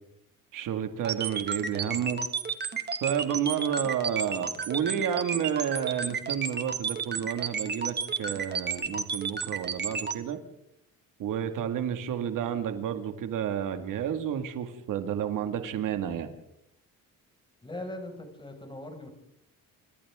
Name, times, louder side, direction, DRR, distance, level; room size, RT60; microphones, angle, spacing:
voice 1, 0.5-2.2 3.0-10.4 11.2-16.3, right 9 dB, 70° right, 7 dB, 2.2 m, -30 dB
sound 1, 1.0-10.1, right 6 dB, 30° right, 2.1 m, -31 dB
voice 2, 17.6-19.1, left 1 dB, 15° left, 2 dB, 6.0 m, -40 dB
28.5 x 26.0 x 3.7 m, 0.78 s
cardioid pair, 140°, 33 cm